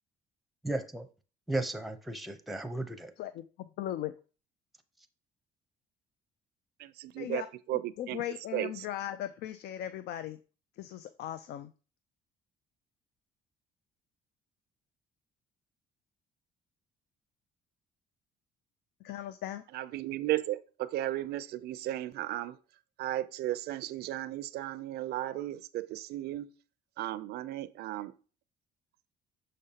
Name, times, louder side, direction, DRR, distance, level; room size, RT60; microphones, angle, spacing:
voice 1, 0.6-1.1 1.5-3.1, right 2 dB, ahead, 0.7 m, -35 dB
voice 2, 3.2-4.1 7.2-7.5 8.0-10.4 10.8-11.7 19.0-19.6, left 12 dB, 70° left, 0.4 m, -38 dB
voice 3, 6.8-8.2 8.5-8.9 19.7-22.6 23.0-26.6 27.0-28.1, right 14 dB, 70° right, 0.5 m, -35 dB
6.5 x 5.1 x 2.8 m
cardioid pair, 110°, 17 cm